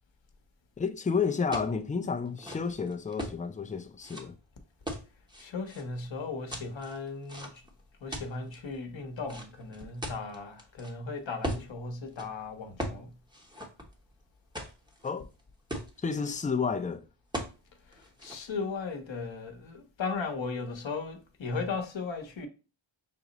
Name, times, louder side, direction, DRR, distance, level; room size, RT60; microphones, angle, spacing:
voice 1, 0.8-4.4 15.0-15.3 16.0-17.1, left 5 dB, 15° left, 0.4 m, -31 dB
sound 1, 1.5-1.8 2.3-3.4 4.0-4.2 4.9-5.8 6.5-7.7 8.1-8.5 9.3-10.9 11.4-11.7 12.1-12.3 12.8-13.0 13.3-14.1 14.5-15.1 15.4-15.5 15.7-16.3 17.3-17.6 17.9-18.4, equal, 10° right, 0.9 m, -38 dB
voice 2, 5.4-7.5 8.0-13.1 18.2-22.5, left 4 dB, 65° left, 0.9 m, -36 dB
5.9 x 2.0 x 3.9 m
wide cardioid pair, 100°, 49 cm